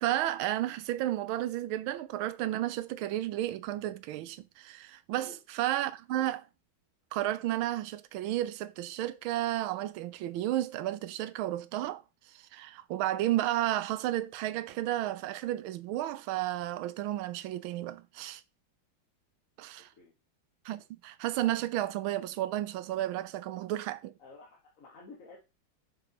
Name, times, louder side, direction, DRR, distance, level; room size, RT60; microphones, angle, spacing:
voice 1, 0.0-6.4 7.1-12.0 12.3-18.4 19.6-19.9 20.6-24.1, right 14 dB, 85° right, 1.4 m, -32 dB
voice 2, 24.2-25.4, left 3 dB, 45° left, 1.5 m, -51 dB
6.7 x 4.2 x 5.2 m
omnidirectional pair, 2.2 m